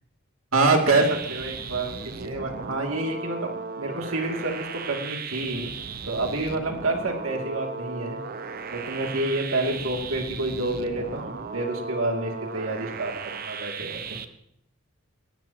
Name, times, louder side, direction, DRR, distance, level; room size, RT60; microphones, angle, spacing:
voice 1, 0.5-5.7 6.0-8.2 8.7-14.2, right 2 dB, 80° right, 1 dB, 2.8 m, -27 dB
sound 1, 0.9-14.2, right 5 dB, 45° right, 0.8 m, -36 dB
19.5 x 17.5 x 3.0 m, 0.73 s
head